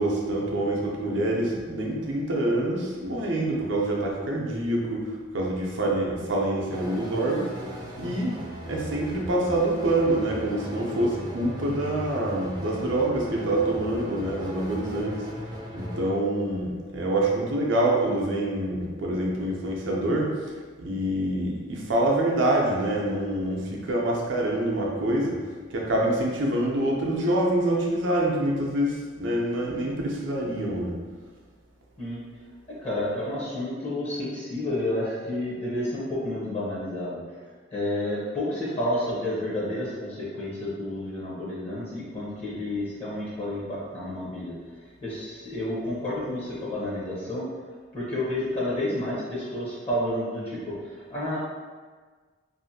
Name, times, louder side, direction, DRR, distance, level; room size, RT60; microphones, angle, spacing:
voice 1, 0.0-8.3 8.7-15.2 15.7-20.3 20.8-25.4 25.7-31.0, right 1 dB, 75° right, -2 dB, 0.6 m, -26 dB
sound 1, 6.7-16.1, equal, 20° right, 0.4 m, -38 dB
voice 2, 32.8-37.2 37.7-44.5 45.0-47.5 47.9-51.4, left 1 dB, 30° left, -8 dB, 0.6 m, -30 dB
2.6 x 2.4 x 2.6 m, 1.5 s
head